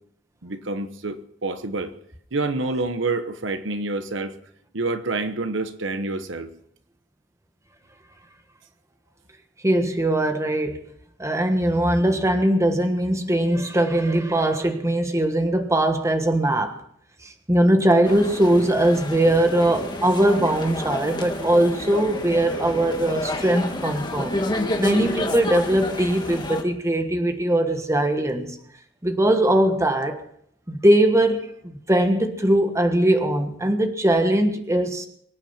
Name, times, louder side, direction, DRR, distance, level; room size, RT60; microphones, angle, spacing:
voice 1, 0.4-1.9 2.3-4.4 4.7-6.5, right 3 dB, 70° right, 10 dB, 1.1 m, -27 dB
voice 2, 9.6-10.8 11.2-16.8 17.2-24.4 24.8-28.6 29.0-30.2 30.7-35.1, right 1 dB, 15° right, 6 dB, 1.4 m, -21 dB
sound 1, 18.0-26.6, left 1 dB, 25° left, 1.7 m, -30 dB
24.0 x 9.0 x 5.7 m, 0.69 s
head